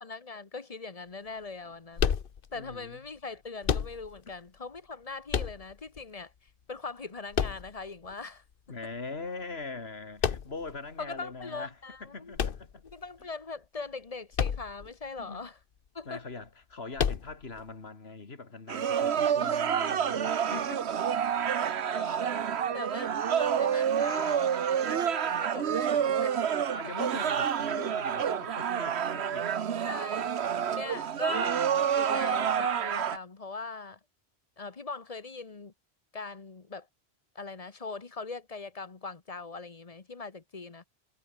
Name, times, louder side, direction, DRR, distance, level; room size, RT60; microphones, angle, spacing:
voice 1, 0.0-2.2 2.5-6.3 6.7-8.4 11.0-12.4 12.9-15.6 15.9-16.2 19.2-19.4 21.8-24.5 24.8-26.5 29.8-30.3 30.7-31.6 32.0-34.0 34.6-35.7 36.1-36.9 37.3-40.8, left 4 dB, 35° left, 1.3 m, -41 dB
sound 1, 2.0-2.8 3.6-4.3 5.3-6.0 7.3-8.1 10.2-10.8 12.3-13.2 14.3-14.9 15.2-15.3 17.0-17.6, left 7 dB, 60° left, 1.1 m, -30 dB
voice 2, 2.5-3.1 8.7-12.8 15.2-15.5 16.1-20.9 26.7-29.7, left 3 dB, 75° left, 2.6 m, -42 dB
sound 2, 18.7-33.2, right 8 dB, 85° right, 1.2 m, -28 dB
omnidirectional pair, 1.1 m